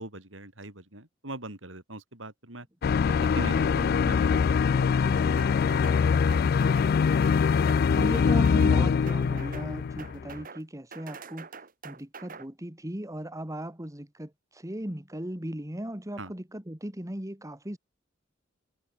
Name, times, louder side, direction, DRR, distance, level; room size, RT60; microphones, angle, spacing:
voice 1, 0.0-2.7 3.2-4.4 4.7-6.0 6.5-6.6 16.2-16.3, right 1 dB, 80° right, 6.8 m, -41 dB
sound 1, 2.8-10.4, left 6 dB, 50° left, 0.3 m, -23 dB
sound 2, 5.4-6.0 6.3-6.9 7.2-7.9 8.1-8.8 9.1-9.7 10.0-10.6 10.9-12.5, right 5 dB, 45° right, 3.0 m, -45 dB
voice 2, 7.9-11.5 11.8-17.8, right 1 dB, 15° right, 2.1 m, -37 dB
head